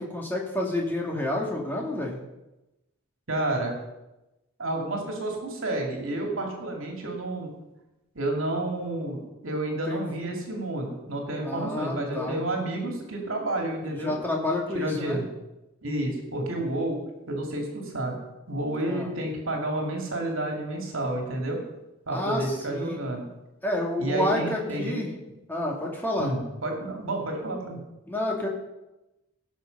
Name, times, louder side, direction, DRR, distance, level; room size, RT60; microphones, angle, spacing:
voice 1, 0.0-2.2 9.9-10.0 11.4-12.4 13.9-15.2 18.8-19.1 22.1-23.0 23.6-25.1 25.5-26.3 28.1-28.5, left 1 dB, 10° left, -2 dB, 2.3 m, -29 dB
voice 2, 3.3-3.8 4.6-7.5 8.1-14.1 14.7-15.3 15.8-17.0 17.3-18.2 18.5-21.6 22.1-23.2 24.0-25.0 26.2-27.8, right 1 dB, 70° right, 1 dB, 2.6 m, -30 dB
18.5 x 6.3 x 5.4 m, 0.98 s
head